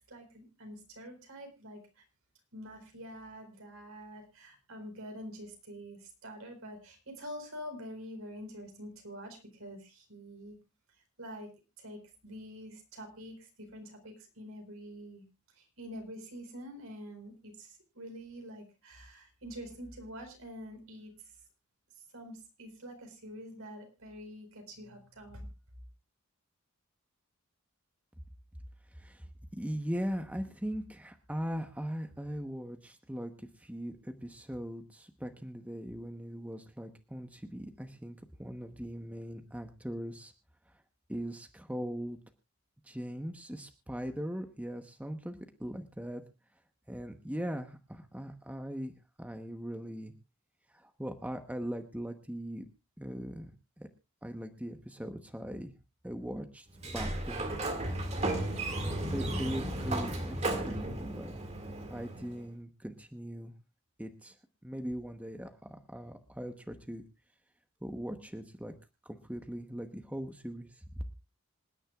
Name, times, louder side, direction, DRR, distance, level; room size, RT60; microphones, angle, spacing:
voice 1, 0.1-2.0 2.5-10.6 11.0-11.5 11.8-15.3 15.5-21.1 22.1-25.5, equal, 70° right, 4 dB, 4.4 m, -46 dB
voice 2, 28.9-29.3 29.5-40.3 41.1-42.2 42.8-46.2 46.9-48.9 49.2-50.1 50.7-52.7 53.0-53.5 53.8-53.9 54.2-55.8 56.0-57.6 59.1-61.3 61.9-63.5 64.0-64.4 64.6-67.0 67.8-68.7 69.0-70.8, equal, 5° right, 6 dB, 1.0 m, -40 dB
Sliding door, 56.7-62.4, right 1 dB, 30° right, 2.1 m, -34 dB
26.5 x 9.9 x 2.4 m, 0.26 s
head